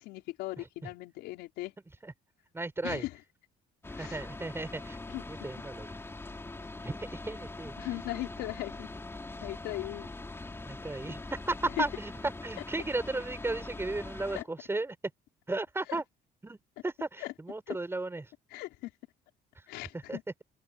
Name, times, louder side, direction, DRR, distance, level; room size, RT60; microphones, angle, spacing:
voice 1, 0.0-1.7 2.8-3.1 4.0-4.2 5.1-5.2 7.8-8.9 9.4-10.1 11.8-11.9 14.4-14.5 17.2-17.3 17.7-17.8 18.5-18.9 19.7-20.2, left 18 dB, 90° left, 5.3 m, -38 dB
voice 2, 0.6-0.9 2.0-2.1 2.5-3.1 3.9-5.0 5.3-6.0 6.8-7.7 10.6-15.0 15.5-16.0 16.4-18.3 19.6-19.7 19.9-20.4, right 2 dB, 15° right, 7.1 m, -35 dB
sound 1, 3.8-14.4, left 2 dB, 15° left, 3.4 m, -43 dB
open air
cardioid pair, 110°, 17 cm